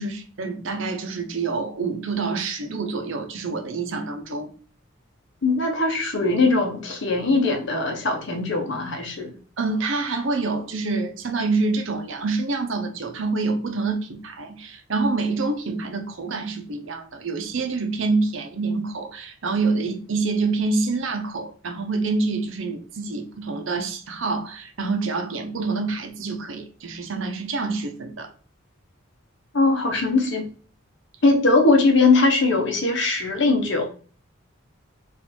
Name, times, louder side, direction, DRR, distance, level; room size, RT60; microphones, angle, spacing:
voice 1, 0.0-4.5 9.6-28.3, right 3 dB, 70° right, 0.8 m, -27 dB
voice 2, 5.4-9.3 29.5-30.5 31.2-33.9, left 3 dB, 60° left, 1.0 m, -20 dB
4.3 x 2.7 x 4.3 m
head